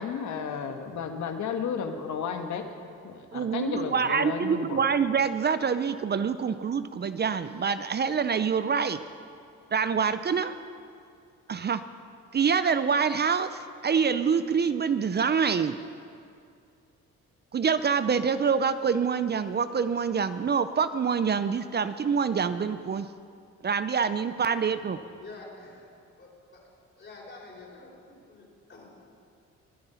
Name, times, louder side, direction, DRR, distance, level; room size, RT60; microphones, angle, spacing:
voice 1, 0.0-2.6 3.0-4.8, left 6 dB, 70° left, 6 dB, 1.6 m, -33 dB
voice 2, 3.3-9.0 9.7-10.5 11.5-11.8 12.3-15.8 17.5-23.1 23.6-25.0, right 6 dB, 35° right, 12 dB, 0.6 m, -26 dB
voice 3, 25.2-25.9 26.2-26.7 27.0-29.0, left 3 dB, 40° left, -3 dB, 4.8 m, -48 dB
22.0 x 9.6 x 5.7 m, 2.4 s
cardioid pair, 90°, 30 cm